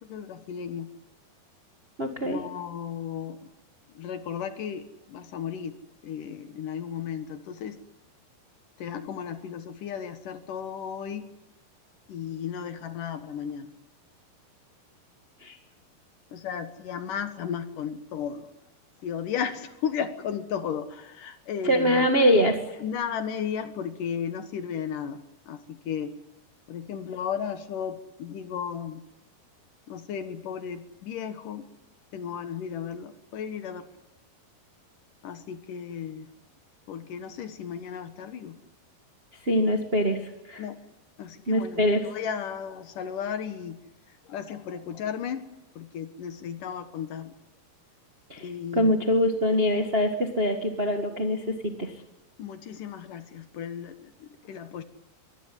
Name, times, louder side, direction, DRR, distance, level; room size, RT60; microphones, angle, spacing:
voice 1, 0.0-0.9 2.2-3.5 3.9-5.8 6.0-7.8 8.8-11.3 12.1-13.7 16.3-18.5 19.0-22.3 22.8-26.2 26.7-29.0 29.9-31.7 32.1-33.9 35.2-36.3 36.9-38.6 40.6-40.8 41.2-43.8 44.3-45.5 45.8-47.3 48.4-48.9 52.4-54.8, left 8 dB, 60° left, 10 dB, 2.6 m, -34 dB
voice 2, 2.0-2.4 15.4-15.6 21.6-22.6 39.4-40.6 41.5-42.1 48.3-51.9, equal, 65° right, 5 dB, 0.6 m, -24 dB
24.0 x 17.0 x 9.8 m, 0.98 s
omnidirectional pair, 4.7 m